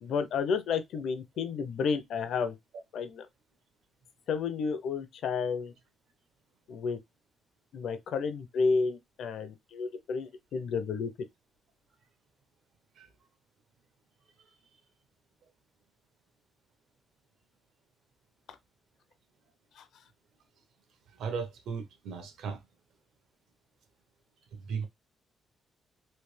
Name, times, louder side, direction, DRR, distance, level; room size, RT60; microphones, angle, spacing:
voice 1, 0.0-2.6 2.9-3.3 4.3-5.7 6.7-7.0 7.7-11.1, left 5 dB, 65° left, 0.6 m, -31 dB
voice 2, 21.2-22.6 24.6-24.9, right 5 dB, 70° right, 0.9 m, -36 dB
3.3 x 2.7 x 3.2 m
cardioid pair, 170°, 0 cm